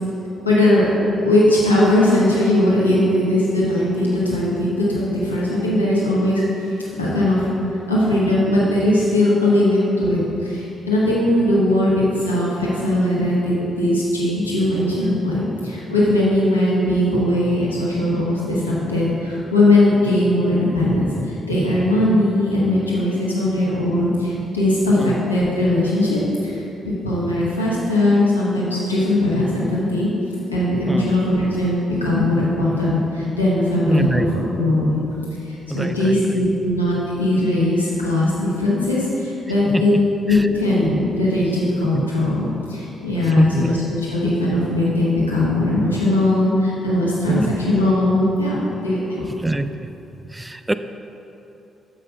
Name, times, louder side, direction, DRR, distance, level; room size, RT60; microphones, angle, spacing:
voice 1, 0.4-0.9 1.2-6.4 7.0-7.5 7.9-30.1 30.5-35.0 35.7-39.9 40.3-49.2, left 1 dB, 85° left, -7 dB, 1.2 m, -19 dB
voice 2, 33.9-34.3 35.7-36.4 39.6-40.0 40.3-40.5 41.9-42.0 43.2-43.8 47.3-47.6 49.4-49.9 50.3-50.7, right 2 dB, 15° right, 10 dB, 0.3 m, -25 dB
7.2 x 5.4 x 5.4 m, 2.9 s
figure-of-eight pair, 40°, 0 cm